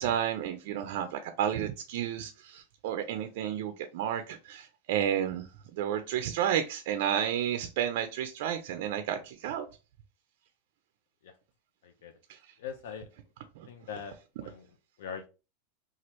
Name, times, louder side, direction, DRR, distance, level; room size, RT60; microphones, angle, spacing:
voice 1, 0.0-9.7 12.3-12.4 13.6-13.7, right 10 dB, 65° right, 8 dB, 0.3 m, -31 dB
voice 2, 12.6-13.1 13.7-14.1 14.4-14.7 15.0-15.3, left 7 dB, 80° left, 7 dB, 0.4 m, -41 dB
3.0 x 2.3 x 2.9 m, 0.31 s
supercardioid pair, 150°, 0 cm